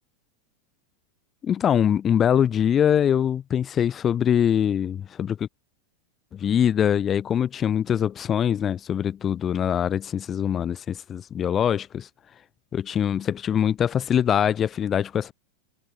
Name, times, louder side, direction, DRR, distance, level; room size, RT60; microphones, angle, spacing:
voice 1, 1.4-5.5 6.3-12.1 12.7-15.3, left 9 dB, 25° left, 4.2 m, -23 dB
figure-of-eight pair, 90°, 0 cm